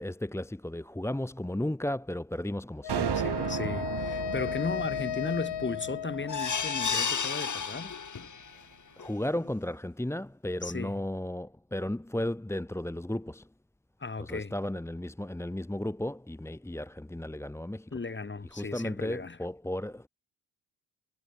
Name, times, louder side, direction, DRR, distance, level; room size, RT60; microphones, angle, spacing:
voice 1, 0.0-3.1 9.0-13.5 14.2-17.9 18.5-20.1, left 1 dB, 5° left, 1.3 m, -34 dB
Wind instrument woodwind instrument, 2.8-7.0, left 13 dB, 65° left, 1.8 m, -35 dB
sound 1, 2.9-7.3, right 10 dB, 65° right, 5.1 m, -35 dB
voice 2, 3.0-7.9 10.6-11.0 14.0-14.5 17.9-19.4, left 4 dB, 25° left, 2.7 m, -36 dB
sound 2, 6.3-8.5 9.0-9.1 9.5-9.6, left 6 dB, 40° left, 4.3 m, -32 dB
supercardioid pair, 55°, 44 cm